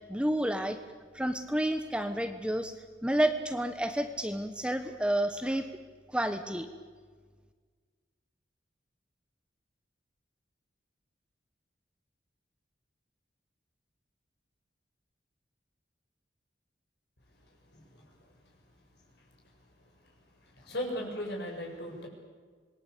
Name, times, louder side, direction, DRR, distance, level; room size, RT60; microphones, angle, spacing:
voice 1, 0.1-0.8 1.1-2.7 3.0-5.7 6.1-6.7, right 1 dB, 5° right, 8 dB, 1.1 m, -30 dB
voice 2, 17.4-18.4 19.2-19.3 20.0-20.2 20.4-22.1, equal, 65° left, 1 dB, 7.2 m, -39 dB
26.5 x 21.5 x 8.4 m, 1.5 s
head